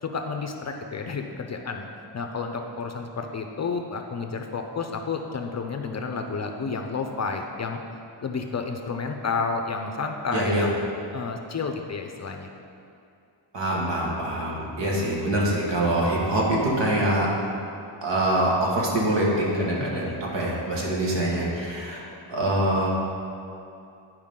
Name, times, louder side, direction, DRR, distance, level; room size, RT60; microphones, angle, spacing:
voice 1, 0.0-1.9 2.1-7.8 8.2-10.8 11.1-12.5 19.8-20.2, left 4 dB, 35° left, 4 dB, 0.5 m, -31 dB
voice 2, 10.3-10.7 13.5-17.3 18.0-22.0 22.3-22.9, right 1 dB, 70° right, -4 dB, 1.8 m, -24 dB
11.0 x 4.7 x 3.7 m, 2.7 s
wide cardioid pair, 115°, 45 cm